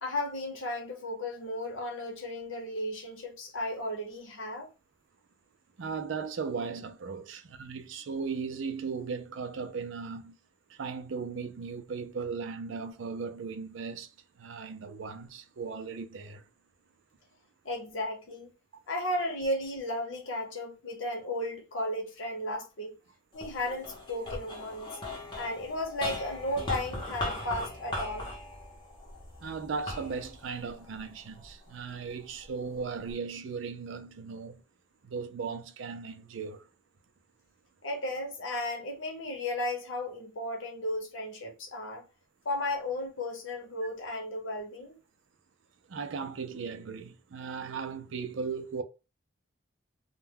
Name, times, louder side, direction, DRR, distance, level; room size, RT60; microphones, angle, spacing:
voice 1, 0.0-4.7 17.6-18.5 18.9-23.0 23.3-25.0 25.4-28.3 37.8-42.0 42.4-45.0, left 1 dB, 70° left, 0.8 m, -34 dB
voice 2, 5.8-10.4 10.7-14.1 14.4-16.5 29.4-34.6 35.0-36.7 45.9-48.8, right 5 dB, 65° right, 0.4 m, -37 dB
sound 1, 23.3-31.8 32.4-33.1, left 2 dB, 25° left, 0.7 m, -39 dB
2.2 x 2.2 x 3.3 m
head